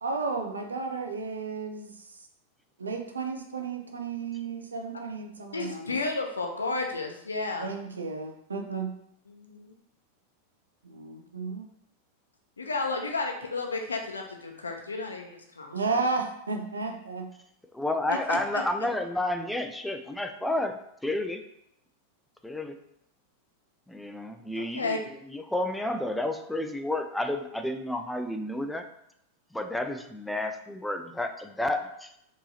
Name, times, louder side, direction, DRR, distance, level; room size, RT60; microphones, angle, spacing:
voice 1, 0.0-2.1 2.8-6.0 7.6-8.9 10.8-11.7 15.7-17.3, right 4 dB, 75° right, 4 dB, 0.5 m, -33 dB
voice 2, 5.5-7.7 8.7-8.8 9.3-9.7 12.6-16.0 18.1-18.6 24.6-25.0, left 3 dB, 75° left, 3 dB, 0.6 m, -32 dB
voice 3, 17.7-21.4 22.4-22.8 23.9-28.8 29.5-32.1, left 1 dB, 5° left, 6 dB, 0.4 m, -31 dB
4.5 x 3.0 x 2.8 m, 0.76 s
figure-of-eight pair, 90°, 0 cm